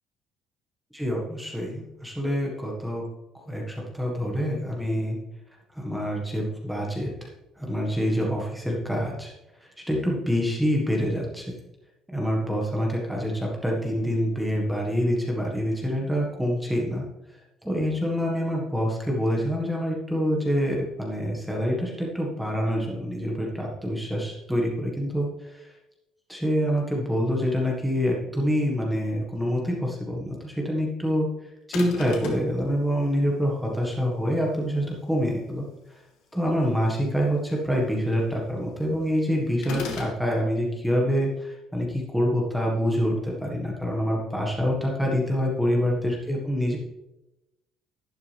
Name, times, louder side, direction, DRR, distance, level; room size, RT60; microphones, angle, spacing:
voice 1, 0.9-3.0 3.5-5.2 5.7-7.3 7.6-9.3 9.9-11.5 12.1-17.0 17.6-25.7 26.3-31.3 31.7-35.7 36.3-46.8, equal, ahead, -2 dB, 1.7 m, -26 dB
sound 1, 31.7-32.5 39.6-40.2, left 4 dB, 70° left, 2.1 m, -33 dB
11.5 x 11.0 x 3.4 m, 0.94 s
cardioid pair, 170°, 0 cm